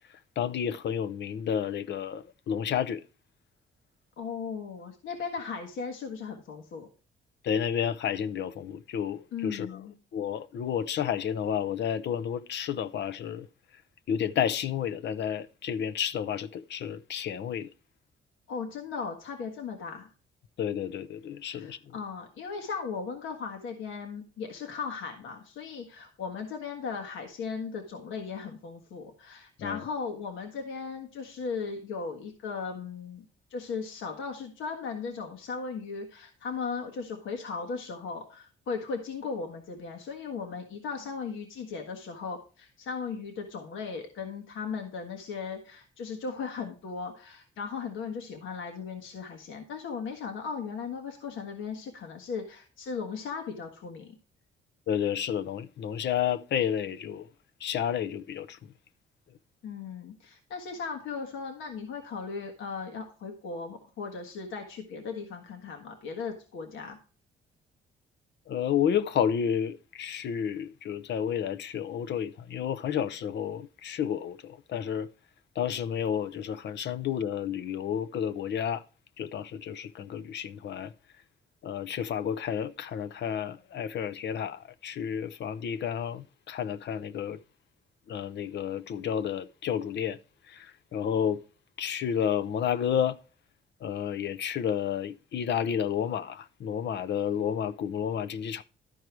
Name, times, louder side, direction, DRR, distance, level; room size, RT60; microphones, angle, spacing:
voice 1, 0.4-3.0 7.4-9.8 10.1-13.5 14.1-17.7 20.6-21.8 29.6-29.8 54.9-57.3 57.6-58.6 68.5-75.1 75.6-78.8 79.2-80.9 81.6-87.4 88.1-90.2 90.5-91.4 91.8-93.2 93.8-98.6, left 8 dB, 60° left, 0.7 m, -31 dB
voice 2, 4.2-6.9 9.3-9.9 18.5-20.1 21.5-33.2 33.5-54.2 59.6-67.0, left 5 dB, 80° left, 1.5 m, -37 dB
12.0 x 4.7 x 4.6 m
cardioid pair, 90°, 20 cm